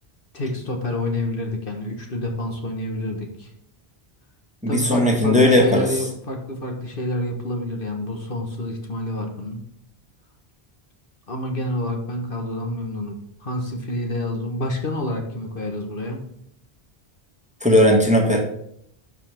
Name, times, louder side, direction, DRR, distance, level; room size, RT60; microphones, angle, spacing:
voice 1, 0.3-3.5 4.7-9.6 11.3-16.3, left 1 dB, 60° left, 2 dB, 1.5 m, -28 dB
voice 2, 4.6-5.9 17.6-18.4, left 1 dB, 5° right, 0 dB, 1.5 m, -17 dB
11.5 x 5.1 x 3.5 m, 0.71 s
omnidirectional pair, 1.0 m